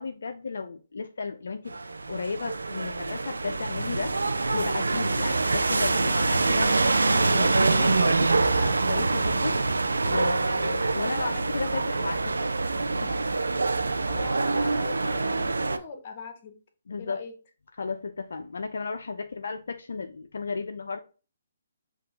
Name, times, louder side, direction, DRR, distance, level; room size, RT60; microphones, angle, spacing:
voice 1, 0.0-1.7 2.1-12.5 13.0-13.2 16.9-17.2 17.8-21.0, left 4 dB, 75° left, 6 dB, 0.4 m, -34 dB
sound 1, 1.7-15.8, right 3 dB, 85° right, 0.4 m, -25 dB
voice 2, 14.1-16.5 17.0-17.3, left 4 dB, 40° left, 5 dB, 1.1 m, -40 dB
5.7 x 2.4 x 3.3 m, 0.35 s
hypercardioid pair, 145°, 0 cm